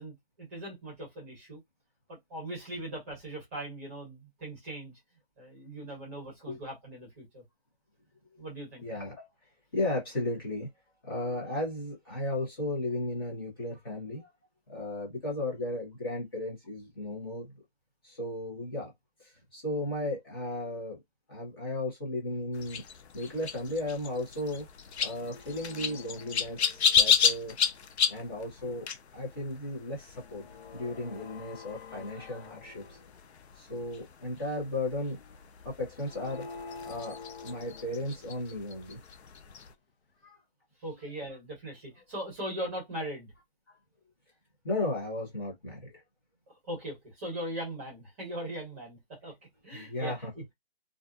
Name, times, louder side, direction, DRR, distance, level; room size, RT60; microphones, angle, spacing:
voice 1, 0.0-1.6 2.1-4.9 5.4-7.4 8.4-8.8 40.8-43.3 46.7-49.3 49.6-50.1, right 1 dB, 15° right, 1.0 m, -39 dB
voice 2, 8.8-9.3 9.7-10.7 11.0-14.3 14.7-17.5 18.0-18.9 19.2-21.0 21.3-22.8 23.1-24.7 25.0-27.5 28.1-30.4 30.7-33.0 33.5-35.2 35.6-36.5 36.8-39.0 40.2-40.4 40.9-41.2 42.0-42.1 43.7-43.8 44.6-46.0 47.3-47.4 49.7-50.3, left 1 dB, 20° left, 0.9 m, -35 dB
sound 1, 22.5-39.7, left 7 dB, 90° left, 0.6 m, -33 dB
sound 2, 24.7-24.8 25.0-27.5 28.0-28.4 30.2-33.2 33.7-33.8 35.8-38.5, left 4 dB, 60° left, 0.8 m, -48 dB
2.4 x 2.4 x 2.4 m
hypercardioid pair, 170°, 32 cm